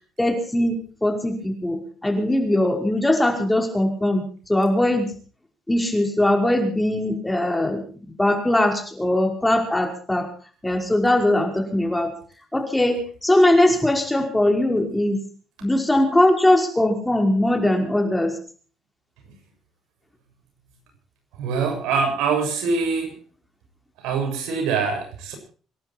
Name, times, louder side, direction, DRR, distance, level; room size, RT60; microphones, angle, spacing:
voice 1, 0.2-4.2 4.5-5.1 5.7-10.3 10.6-12.1 12.5-15.2 15.6-18.3, left 1 dB, 10° left, 3 dB, 5.3 m, -20 dB
voice 2, 21.4-23.1 24.0-25.3, right 5 dB, 85° right, 4 dB, 7.0 m, -24 dB
26.5 x 11.5 x 4.5 m, 0.41 s
cardioid pair, 90°, 0 cm